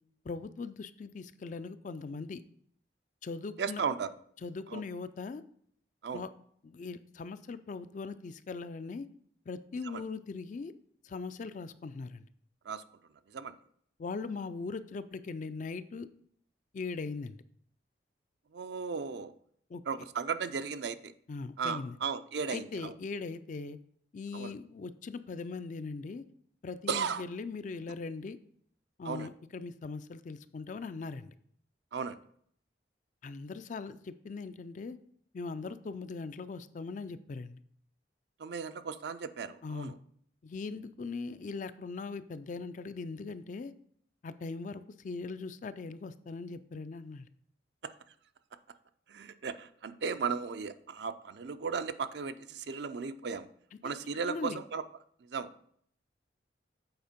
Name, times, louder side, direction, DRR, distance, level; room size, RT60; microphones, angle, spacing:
voice 1, 0.2-2.4 3.2-3.8 4.4-5.4 6.1-6.3 6.6-9.1 9.5-10.7 11.0-12.3 14.0-16.1 16.7-17.4 19.7-19.8 21.3-22.0 22.5-23.8 24.1-26.2 26.6-28.4 29.0-31.3 33.2-35.0 35.3-37.6 39.6-39.9 40.4-43.7 44.2-47.3 54.3-54.6, left 4 dB, 40° left, 12 dB, 0.3 m, -40 dB
voice 2, 3.6-4.1 4.7-4.8 6.0-6.2 9.9-10.0 12.7-12.8 13.3-13.5 18.5-19.3 19.9-21.1 21.6-22.9 24.3-24.5 26.9-27.2 29.0-29.3 31.9-32.2 38.4-39.9 49.1-53.5 53.8-54.8 55.3-55.5, right 5 dB, 65° right, 11 dB, 0.4 m, -35 dB
8.0 x 4.3 x 5.1 m, 0.64 s
head